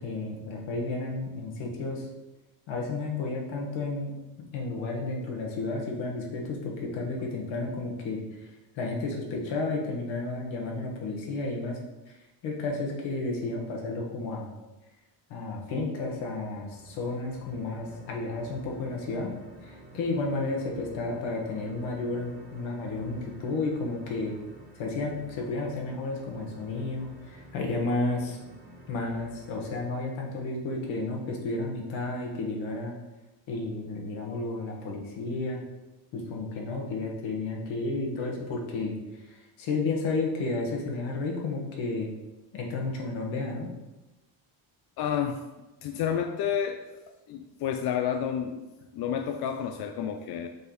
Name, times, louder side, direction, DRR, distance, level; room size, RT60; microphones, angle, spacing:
voice 1, 0.0-2.1 2.7-4.1 4.4-8.5 8.7-11.8 12.1-14.5 15.3-19.3 19.6-24.3 24.7-28.4 28.9-32.9 33.5-35.6 36.1-42.1 42.5-43.7, left 3 dB, 75° left, -1 dB, 1.6 m, -32 dB
sound 1, 16.1-29.8, equal, 20° right, 1.0 m, -50 dB
voice 2, 45.0-45.4 45.8-47.0 47.3-48.6 48.9-50.5, left 8 dB, 55° left, 5 dB, 0.5 m, -30 dB
6.4 x 5.4 x 3.1 m, 1.1 s
cardioid pair, 155°, 47 cm